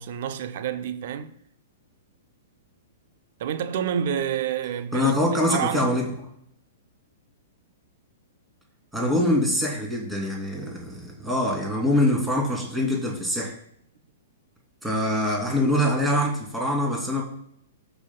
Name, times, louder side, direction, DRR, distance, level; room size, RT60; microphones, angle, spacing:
voice 1, 0.0-1.3 3.4-5.1 5.5-5.9, right 9 dB, 55° right, 0.7 m, -28 dB
voice 2, 4.9-6.0 8.9-13.5 14.8-17.2, left 1 dB, 5° right, 2.9 m, -24 dB
15.0 x 5.6 x 2.3 m
figure-of-eight pair, 110°, 0 cm